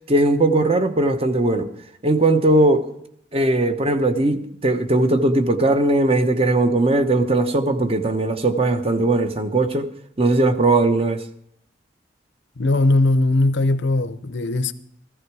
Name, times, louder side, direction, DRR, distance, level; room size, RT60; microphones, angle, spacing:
voice 1, 0.1-1.7 2.0-2.9 3.3-9.9 10.2-11.2, right 2 dB, 30° right, 0.9 m, -19 dB
voice 2, 12.6-14.7, left 2 dB, 60° left, 0.8 m, -19 dB
14.5 x 14.5 x 4.8 m
head